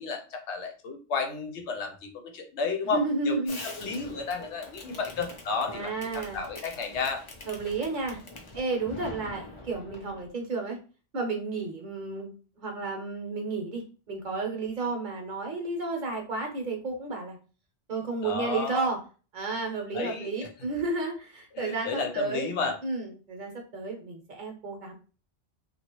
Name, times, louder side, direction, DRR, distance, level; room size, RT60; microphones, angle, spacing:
voice 1, 0.0-3.3 3.6-7.2 18.2-18.9 19.9-20.5 21.6-22.8, left 4 dB, 80° left, 5 dB, 0.9 m, -32 dB
voice 2, 2.8-3.6 5.7-6.4 7.5-8.2 8.5-10.8 11.1-17.4 17.9-19.0 19.3-22.5 22.8-24.9, right 3 dB, 45° right, 2 dB, 0.8 m, -32 dB
Fireworks, 3.5-10.3, left 2 dB, 45° left, 0.4 m, -44 dB
2.8 x 2.3 x 3.0 m, 0.36 s
omnidirectional pair, 1.2 m